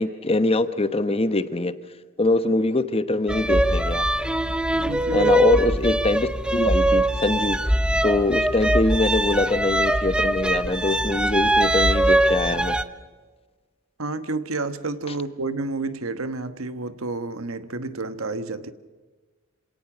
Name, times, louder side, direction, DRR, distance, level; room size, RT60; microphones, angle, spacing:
voice 1, 0.0-1.7 2.2-4.0 5.1-7.6 8.0-12.8, left 2 dB, 30° left, 11 dB, 1.0 m, -23 dB
sound 1, 3.3-12.8, right 1 dB, 5° right, 0.7 m, -22 dB
voice 2, 4.8-5.3 14.0-18.7, right 3 dB, 80° right, 11 dB, 1.3 m, -30 dB
26.5 x 18.0 x 6.2 m, 1.3 s
head